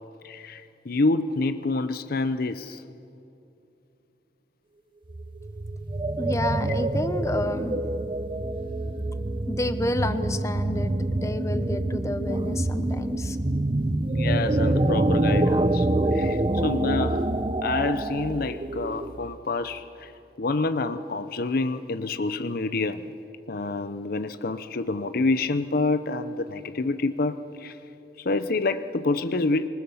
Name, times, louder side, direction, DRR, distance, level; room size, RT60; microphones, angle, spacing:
voice 1, 0.2-2.8 14.1-17.3 17.6-20.1 20.4-23.1 23.5-27.8 28.2-29.7, left 3 dB, 55° left, 0.7 m, -27 dB
sound 1, 5.1-19.2, right 1 dB, 30° right, 0.7 m, -26 dB
voice 2, 6.2-7.8 9.5-13.4, left 1 dB, 15° left, 0.8 m, -30 dB
26.0 x 19.5 x 7.1 m
head